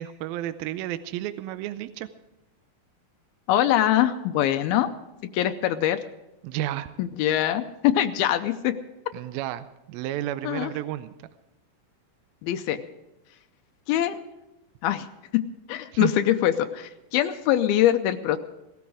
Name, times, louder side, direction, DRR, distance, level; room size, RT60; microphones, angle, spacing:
voice 1, 0.0-2.1 6.4-6.9 9.1-11.3 15.9-16.1, right 13 dB, 80° right, 12 dB, 2.4 m, -32 dB
voice 2, 3.5-4.9 5.3-6.0 7.0-8.7 10.4-10.7 12.4-12.8 13.9-14.2 14.8-15.1 15.3-15.4 15.7-18.4, left 12 dB, 85° left, 8 dB, 2.6 m, -23 dB
17.5 x 13.5 x 4.8 m, 0.97 s
omnidirectional pair, 4.3 m